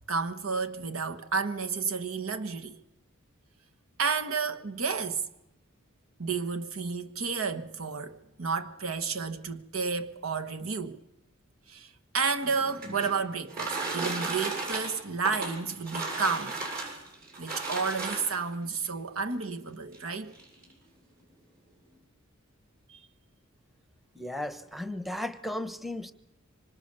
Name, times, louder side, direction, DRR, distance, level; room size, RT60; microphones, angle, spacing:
voice 1, 0.1-2.8 4.0-5.2 6.2-11.0 11.7-16.6 17.4-20.3 22.9-23.0, right 5 dB, 85° right, 1.4 m, -31 dB
sound 1, 12.3-18.5 19.4-19.5 19.9-20.0 20.3-20.7, right 3 dB, 45° right, 7.9 m, -35 dB
voice 2, 24.1-26.1, left 1 dB, ahead, 0.9 m, -35 dB
25.5 x 25.0 x 6.7 m
head